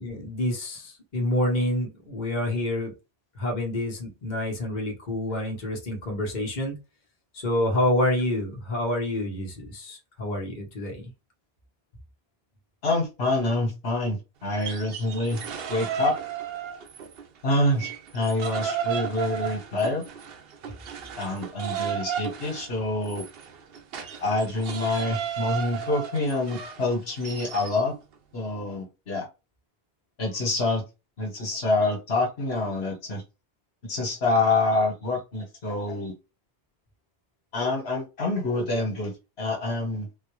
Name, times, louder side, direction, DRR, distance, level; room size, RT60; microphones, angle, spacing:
voice 1, 0.0-2.9 3.4-6.8 7.4-11.1, left 1 dB, 45° left, 1.1 m, -28 dB
voice 2, 12.8-15.4 15.7-16.1 17.4-20.0 21.2-23.2 24.2-27.9 28.3-29.2 30.2-30.8 31.2-33.2 33.9-36.1 37.5-39.1 39.4-40.1, left 2 dB, 75° left, 1.4 m, -26 dB
sound 1, 14.5-17.2 17.5-27.8, right 8 dB, 70° right, 0.8 m, -34 dB
4.0 x 2.2 x 3.0 m
omnidirectional pair, 1.1 m